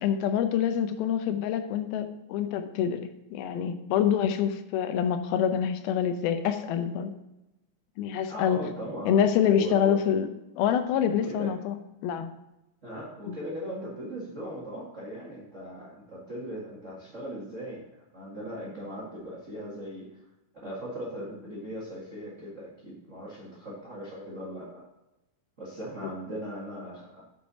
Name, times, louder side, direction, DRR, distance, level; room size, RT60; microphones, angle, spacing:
voice 1, 0.0-3.0 3.3-7.1 8.0-8.6 9.1-10.3 10.6-11.8 12.0-12.3 13.3-13.4, left 8 dB, 85° left, 9 dB, 2.6 m, -26 dB
voice 2, 8.3-10.0 11.1-11.5 12.8-17.8 18.1-20.2 20.6-24.8 25.6-27.2, equal, 35° right, -5 dB, 1.2 m, -39 dB
6.9 x 6.6 x 6.2 m, 0.93 s
omnidirectional pair, 4.2 m